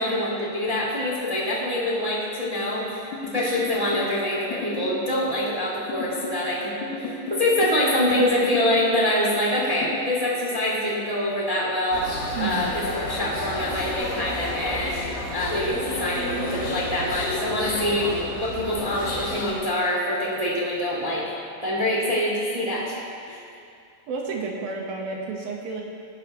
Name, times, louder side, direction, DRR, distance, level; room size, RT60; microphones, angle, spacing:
voice 1, 0.0-12.0 12.4-21.3 21.6-23.0 23.3-23.4, left 1 dB, 15° right, -5 dB, 1.6 m, -25 dB
sound 1, 3.1-4.1 4.5-5.1 5.9-6.4 6.8-7.8 8.2-8.8 9.6-10.1, left 4 dB, 55° left, 1.7 m, -34 dB
sound 2, 11.9-19.5, left 2 dB, 90° left, 3.9 m, -31 dB
voice 2, 12.4-12.7 24.1-25.8, right 4 dB, 80° right, -1 dB, 3.4 m, -31 dB
19.0 x 11.5 x 3.4 m, 2.6 s
omnidirectional pair, 4.2 m